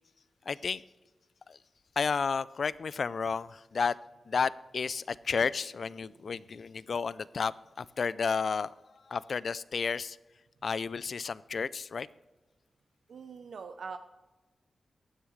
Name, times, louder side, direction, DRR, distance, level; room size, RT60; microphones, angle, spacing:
voice 1, 0.5-0.8 1.5-1.6 2.0-4.0 4.3-8.7 9.1-10.2 10.6-12.1, left 5 dB, 60° left, 18 dB, 0.4 m, -32 dB
voice 2, 13.1-14.0, right 5 dB, 80° right, 7 dB, 0.6 m, -43 dB
15.5 x 9.9 x 3.2 m, 1.2 s
wide cardioid pair, 85°, 0 cm